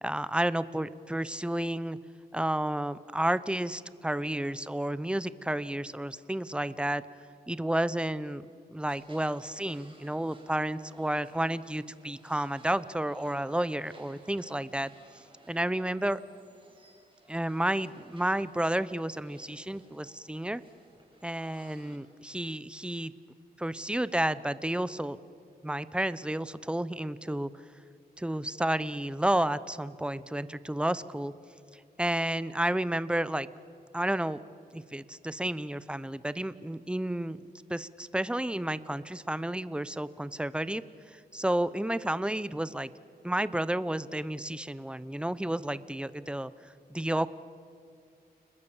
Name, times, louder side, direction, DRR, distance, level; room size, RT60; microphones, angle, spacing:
voice 1, 0.0-2.0 2.3-7.0 7.5-14.9 15.5-16.2 17.3-20.6 21.2-23.1 23.6-25.2 25.6-27.5 28.2-31.3 31.7-33.5 33.9-34.4 34.7-37.4 37.7-42.9 43.2-46.5 46.9-47.3, right 1 dB, 5° right, 16 dB, 0.8 m, -31 dB
sound 1, 8.9-22.0, right 2 dB, 30° right, 5.9 m, -59 dB
30.0 x 21.0 x 7.3 m, 2.4 s
cardioid pair, 65°, 17 cm